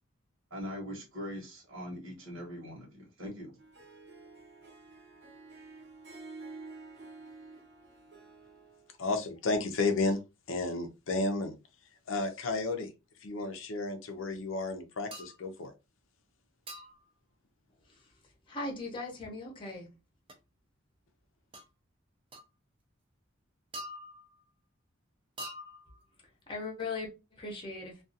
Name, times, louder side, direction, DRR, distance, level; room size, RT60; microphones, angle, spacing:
voice 1, 0.5-3.5, equal, 75° right, 1.1 m, -41 dB
Harp, 3.6-8.9, right 3 dB, 55° right, 0.8 m, -50 dB
voice 2, 9.0-10.2 10.5-11.5 12.1-12.9 13.2-15.7, left 3 dB, 70° left, 0.5 m, -32 dB
sound 1, 15.1-15.4 16.7-17.1 20.3-20.4 21.5-21.7 22.3-22.5 23.7-24.4 25.4-26.0, equal, 25° right, 0.4 m, -44 dB
voice 3, 18.5-19.9 26.5-28.0, left 3 dB, 25° left, 0.7 m, -39 dB
2.3 x 2.3 x 2.6 m
head